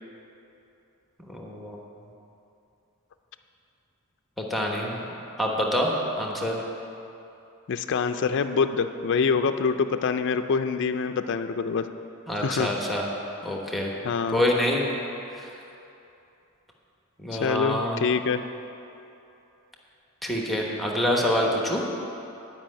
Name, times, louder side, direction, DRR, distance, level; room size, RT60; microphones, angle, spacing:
voice 1, 1.2-1.8 4.4-5.0 5.4-6.6 12.3-13.1 13.4-13.9 14.3-15.0 15.4-15.5 17.2-18.0 20.2-21.8, left 1 dB, ahead, -1 dB, 1.0 m, -26 dB
voice 2, 7.7-11.8 12.4-12.7 14.0-14.4 17.3-18.4, left 5 dB, 55° left, 8 dB, 0.4 m, -25 dB
10.5 x 5.5 x 8.5 m, 2.9 s
head